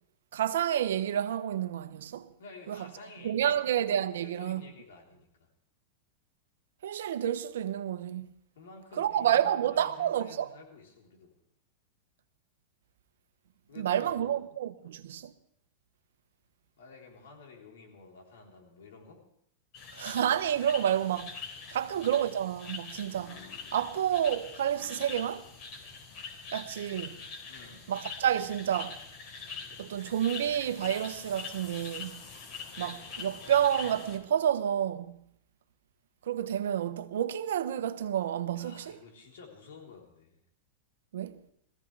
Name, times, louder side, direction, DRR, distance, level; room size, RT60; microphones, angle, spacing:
voice 1, 0.3-2.3 2.7-2.8 3.2-4.6 6.8-8.3 9.0-10.5 13.8-15.3 19.9-21.4 21.7-23.4 23.7-25.5 26.5-27.2 27.9-29.0 29.8-32.2 32.8-35.2 36.3-39.0 41.1-41.4, right 10 dB, 80° right, 0.9 m, -29 dB
voice 2, 2.4-3.7 4.1-5.5 8.6-11.3 13.7-14.4 16.8-19.3 21.7-21.9 27.5-27.9 38.5-40.4, left 4 dB, 80° left, 3.8 m, -51 dB
sound 1, 19.7-34.2, left 5 dB, 50° left, 3.8 m, -44 dB
21.0 x 15.5 x 3.4 m
hypercardioid pair, 120°, 0 cm